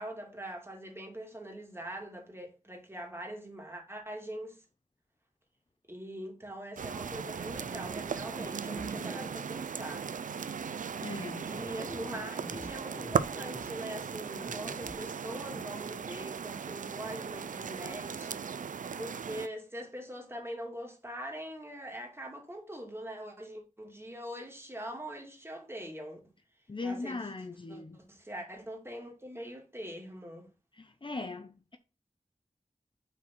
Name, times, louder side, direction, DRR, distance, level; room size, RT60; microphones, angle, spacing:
voice 1, 0.0-4.6 5.9-10.1 11.4-18.4 19.0-26.2 26.8-27.2 27.7-30.5, right 1 dB, 20° right, 2.5 m, -43 dB
sound 1, 6.8-19.5, right 6 dB, 85° right, 0.4 m, -37 dB
sound 2, 8.0-9.3 11.3-13.6 14.4-14.9 15.5-15.6, equal, 10° left, 1.8 m, -45 dB
voice 2, 11.0-11.4 26.7-28.0 30.8-31.8, left 3 dB, 40° left, 0.7 m, -39 dB
6.1 x 4.4 x 5.9 m
wide cardioid pair, 60°, 13 cm